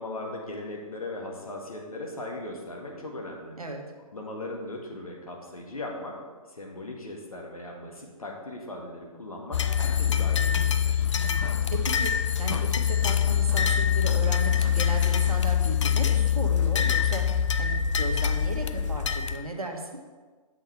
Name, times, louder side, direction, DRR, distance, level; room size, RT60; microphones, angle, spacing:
voice 1, 0.0-3.6 4.1-6.2 6.5-11.1, left 2 dB, 70° left, 0 dB, 1.8 m, -38 dB
sound 1, 9.5-19.4, left 8 dB, 55° left, 0.5 m, -24 dB
voice 2, 11.1-19.9, right 2 dB, 80° right, 2 dB, 1.4 m, -36 dB
7.9 x 5.9 x 4.5 m, 1.4 s
figure-of-eight pair, 125°, 19 cm